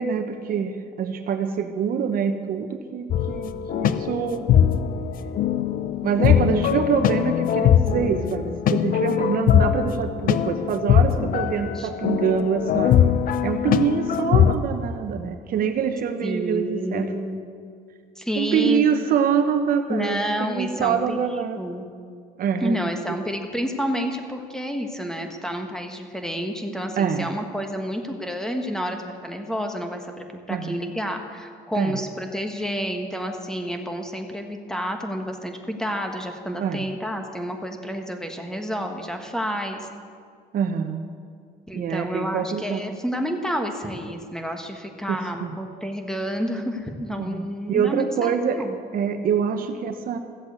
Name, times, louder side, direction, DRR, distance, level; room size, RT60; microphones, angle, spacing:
voice 1, 0.0-4.5 6.0-13.2 13.4-17.1 18.4-21.6 22.4-22.9 27.0-27.3 30.5-30.7 31.7-32.0 36.6-36.9 40.5-41.1 41.7-42.8 45.1-45.5 47.2-48.7 48.9-50.2, right 7 dB, 60° right, 8 dB, 1.0 m, -25 dB
sound 1, 3.1-14.5, left 9 dB, 55° left, 0.6 m, -21 dB
voice 2, 16.2-17.4 18.1-18.8 19.9-21.9 22.6-39.9 41.7-48.8, equal, 5° left, 4 dB, 1.6 m, -29 dB
14.5 x 7.9 x 8.2 m, 2.1 s
cardioid pair, 110°, 17 cm